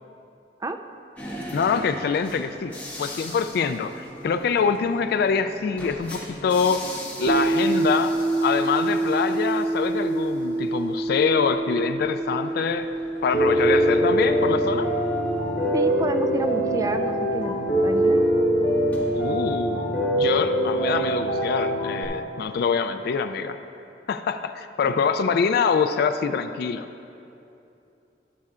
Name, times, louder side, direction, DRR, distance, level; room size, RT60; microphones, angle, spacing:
sound 1, 1.2-19.7, equal, 10° left, 1.7 m, -42 dB
voice 1, 1.5-2.7 3.0-6.9 7.2-8.1 8.4-12.9 13.2-14.9 19.1-23.6 24.1-26.9, left 5 dB, 60° left, 8 dB, 0.3 m, -25 dB
sound 2, 7.3-19.4, right 2 dB, 60° right, 0.9 m, -28 dB
Piano, 13.3-22.0, right 1 dB, 80° left, 1.9 m, -23 dB
voice 2, 15.7-18.2 24.8-24.9, right 2 dB, 20° right, 8 dB, 0.3 m, -29 dB
12.5 x 10.5 x 2.4 m, 2.7 s
head